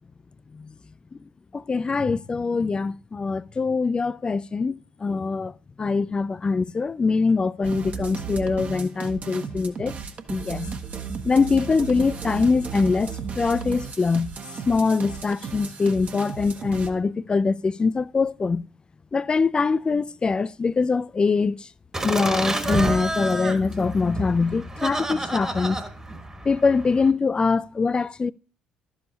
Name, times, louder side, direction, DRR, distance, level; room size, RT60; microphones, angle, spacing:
voice 1, 1.5-5.5 5.8-10.0 10.3-10.7 11.2-14.3 14.7-18.6 19.1-21.6 22.0-25.8 26.5-28.3, left 4 dB, 25° left, 0.4 m, -23 dB
sound 1, 7.6-16.9, right 6 dB, 45° right, 1.0 m, -35 dB
Laughter, 21.9-27.1, right 2 dB, 20° right, 1.3 m, -30 dB
12.0 x 7.2 x 2.8 m
hypercardioid pair, 50°, 3 cm